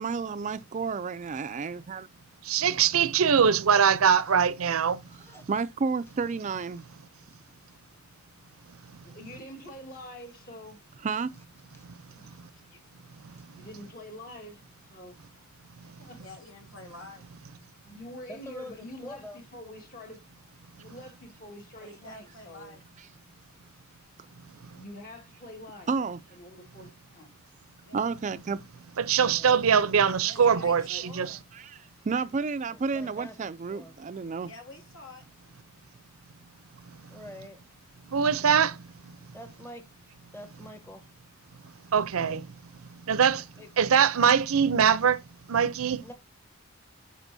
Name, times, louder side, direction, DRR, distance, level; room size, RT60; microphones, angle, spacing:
voice 1, 0.0-2.1 5.5-6.8 11.0-11.3 25.9-26.2 27.9-28.6 31.5-31.8 32.0-34.5, right 5 dB, 35° right, 0.4 m, -31 dB
voice 2, 2.5-5.0 29.0-31.3 38.1-38.8 41.9-42.5 43.1-43.4 43.8-45.2 45.5-46.0, right 7 dB, 85° right, 0.6 m, -22 dB
voice 3, 5.1-5.5 18.3-19.4 29.3-29.6 32.7-33.4 33.7-34.0 37.1-37.6 39.3-39.8 40.3-41.0 43.6-43.7 46.0-46.1, left 1 dB, 10° left, 1.1 m, -45 dB
voice 4, 9.0-10.8 12.1-12.4 13.5-15.2 16.0-16.2 17.6-20.3 20.8-22.8 24.5-25.9 26.3-27.3 29.1-29.4 30.1-31.1, equal, 40° left, 1.9 m, -46 dB
voice 5, 16.2-17.3 21.7-22.8 27.8-28.1 30.2-31.4 34.4-35.2 46.0-46.1, left 2 dB, 70° left, 3.0 m, -48 dB
10.5 x 4.3 x 2.7 m
head